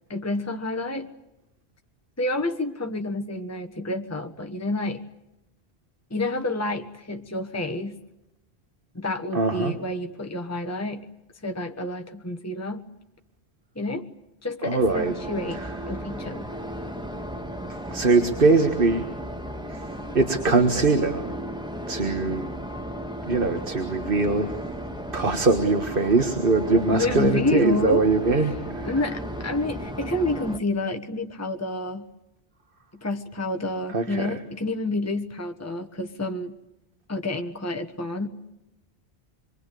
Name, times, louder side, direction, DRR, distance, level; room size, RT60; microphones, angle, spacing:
voice 1, 0.1-1.1 2.2-5.0 6.1-8.0 8.9-11.1 11.4-12.9 13.7-14.1 14.4-15.6 15.9-16.5 26.9-28.0 28.4-28.5 28.8-32.1 33.0-36.5 37.1-38.3, left 2 dB, 15° left, 5 dB, 1.3 m, -29 dB
voice 2, 9.3-9.8 14.6-15.1 15.5-15.7 17.9-19.1 19.7-19.9 20.1-21.3 21.9-22.5 23.3-24.6 25.1-28.9 33.9-34.3, right 3 dB, 55° right, 6 dB, 1.9 m, -22 dB
sound 1, 14.8-30.6, equal, 5° right, 1.6 m, -35 dB
27.0 x 23.5 x 8.5 m, 0.91 s
omnidirectional pair, 1.1 m